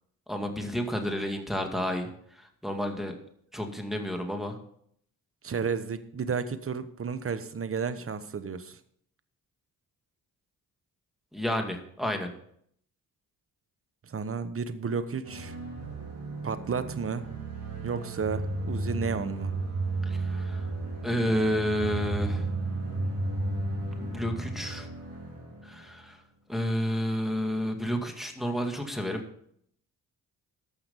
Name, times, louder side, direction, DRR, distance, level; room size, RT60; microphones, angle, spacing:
voice 1, 0.3-3.1 3.5-4.6 11.3-12.3 20.1-20.7 21.0-22.5 24.0-24.9 25.6-26.2 26.5-29.2, equal, ahead, 3 dB, 2.1 m, -30 dB
voice 2, 5.4-8.8 14.0-15.5 16.4-17.3 17.8-19.5, right 6 dB, 40° right, 12 dB, 1.1 m, -32 dB
sound 1, 15.2-26.0, right 2 dB, 75° right, 3.5 m, -33 dB
13.5 x 5.8 x 5.4 m, 0.67 s
cardioid pair, 70°, 36 cm